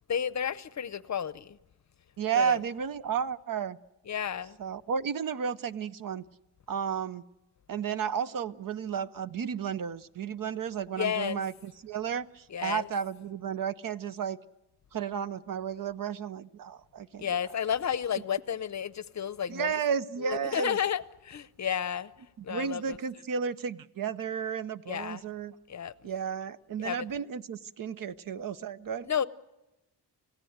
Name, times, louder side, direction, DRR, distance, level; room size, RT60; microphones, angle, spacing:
voice 1, 0.1-1.6 2.4-2.6 4.1-4.6 11.0-11.4 12.5-12.9 17.2-19.8 20.2-22.1 22.4-23.0 24.9-25.2 25.7-25.9 26.8-27.0 29.0-29.3, left 8 dB, 40° left, 0.7 m, -31 dB
voice 2, 2.2-3.8 4.6-6.2 6.7-7.2 7.7-14.4 14.9-17.4 19.5-20.8 22.5-25.5 26.0-29.1, right 7 dB, 50° right, 0.7 m, -33 dB
29.0 x 16.0 x 7.9 m
cardioid pair, 115°, 42 cm